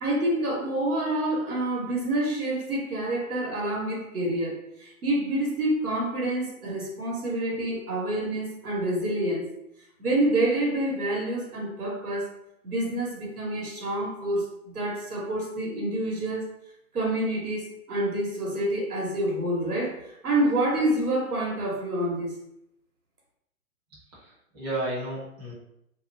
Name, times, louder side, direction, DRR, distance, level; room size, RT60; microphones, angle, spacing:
voice 1, 0.0-9.5 10.0-12.3 12.6-14.5 14.7-16.5 16.9-22.4, right 1 dB, 85° right, -3 dB, 1.2 m, -27 dB
voice 2, 24.1-25.5, right 1 dB, 10° right, -8 dB, 0.6 m, -33 dB
2.5 x 2.1 x 2.6 m, 0.80 s
hypercardioid pair, 140°, 43 cm